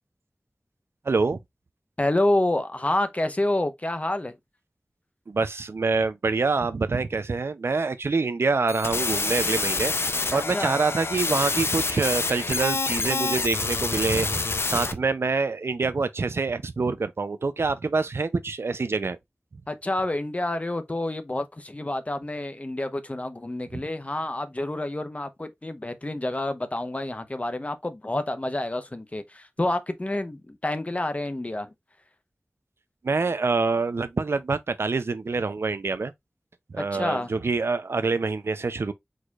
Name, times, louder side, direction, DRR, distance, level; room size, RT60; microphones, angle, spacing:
voice 1, 1.1-1.4 5.3-19.2 23.7-23.8 33.0-36.1 36.7-38.9, right 4 dB, 85° right, 0.5 m, -26 dB
voice 2, 2.0-4.4 10.3-10.8 19.7-31.7 36.8-37.3, left 1 dB, 35° left, 0.8 m, -28 dB
sound 1, 8.7-14.9, left 3 dB, 75° left, 0.5 m, -27 dB
4.8 x 4.2 x 2.4 m
wide cardioid pair, 65°, 4 cm